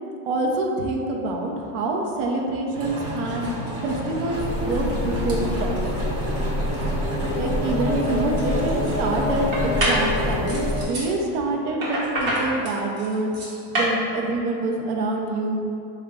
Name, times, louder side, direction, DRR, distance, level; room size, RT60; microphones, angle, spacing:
voice 1, 0.2-3.5 3.8-5.8 7.4-15.6, right 2 dB, 80° right, 1 dB, 0.7 m, -26 dB
sound 1, 2.7-10.3, right 1 dB, 30° right, 0.6 m, -31 dB
sound 2, 4.3-10.9, left 1 dB, 15° left, 0.3 m, -26 dB
sound 3, 7.9-8.0 8.4-8.9 9.5-10.1 10.5-11.1 11.8-14.0, right 1 dB, 60° right, 1.1 m, -26 dB
3.7 x 2.2 x 3.5 m, 2.5 s
cardioid pair, 115°, 49 cm